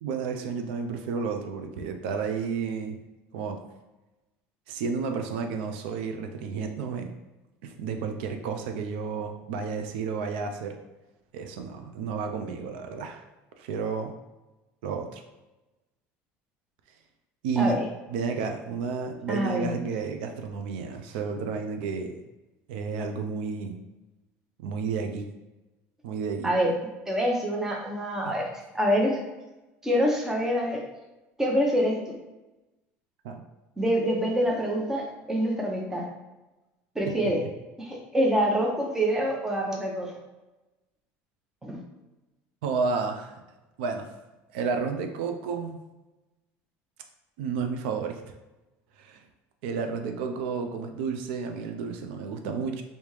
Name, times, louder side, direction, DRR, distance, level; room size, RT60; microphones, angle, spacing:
voice 1, 0.0-3.0 3.3-3.6 4.7-7.1 7.6-10.8 11.3-13.2 13.6-14.1 14.8-15.2 17.4-17.8 18.1-22.1 22.7-23.8 24.6-25.3 26.0-26.5 33.2-33.4 37.0-37.1 42.6-43.3 43.8-44.1 44.5-45.8 47.4-48.2 49.0-49.2 49.6-52.8, right 5 dB, 90° right, 5 dB, 0.4 m, -31 dB
voice 2, 17.6-17.9 19.3-19.7 26.4-26.7 27.1-29.2 29.8-30.8 31.4-32.0 33.8-36.0 36.9-37.4 37.8-40.1 41.6-41.8, equal, 10° right, 0 dB, 0.6 m, -26 dB
3.3 x 2.7 x 3.1 m, 1.1 s
cardioid pair, 155°, 5 cm